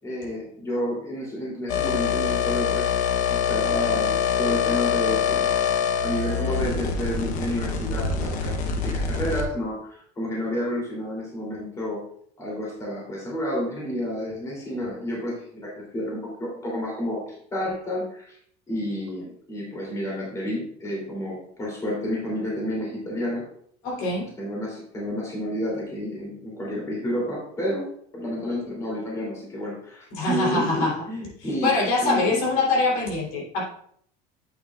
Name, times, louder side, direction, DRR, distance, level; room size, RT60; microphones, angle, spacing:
voice 1, 0.0-2.9 3.3-5.5 6.0-12.1 12.4-18.4 18.7-23.4 24.4-31.7 32.0-32.4, equal, 15° left, -4 dB, 3.0 m, -30 dB
sound 1, 1.7-9.5, left 7 dB, 45° left, 0.9 m, -25 dB
voice 2, 23.8-24.3 30.1-31.0 31.6-33.7, left 3 dB, 70° left, -3 dB, 3.3 m, -23 dB
8.5 x 7.9 x 2.4 m, 0.65 s
cardioid pair, 165°, 18 cm